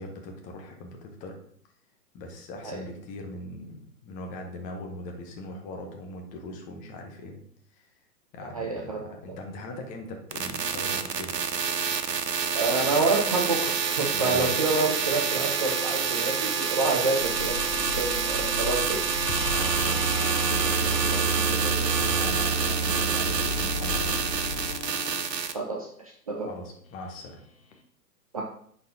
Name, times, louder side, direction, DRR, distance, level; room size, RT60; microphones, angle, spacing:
voice 1, 0.0-1.4 2.1-7.4 8.3-11.3 14.1-14.6 19.5-24.2 26.4-27.4, left 2 dB, 15° left, 3 dB, 0.7 m, -39 dB
voice 2, 8.4-9.0 12.5-17.5 17.9-19.0 25.5-25.9 26.3-26.5 28.3-28.4, right 3 dB, 25° right, -1 dB, 0.4 m, -27 dB
sound 1, 10.3-25.5, right 6 dB, 90° right, 0.8 m, -28 dB
sound 2, 17.2-24.8, left 4 dB, 80° left, 1.3 m, -38 dB
sound 3, 19.3-25.2 27.7-27.8, right 3 dB, 55° left, 1.1 m, -31 dB
10.0 x 4.3 x 2.7 m, 0.63 s
hypercardioid pair, 130°, 48 cm